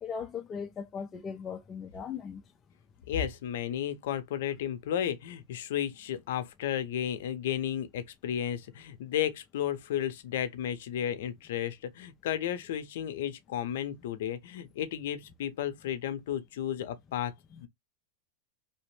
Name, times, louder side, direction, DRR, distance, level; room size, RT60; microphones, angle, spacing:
voice 1, 0.0-2.4 17.5-17.6, left 6 dB, 20° left, 0.3 m, -38 dB
voice 2, 3.1-17.3 17.6-17.7, left 10 dB, 70° left, 0.5 m, -33 dB
2.8 x 2.1 x 3.1 m
supercardioid pair, 165°, 0 cm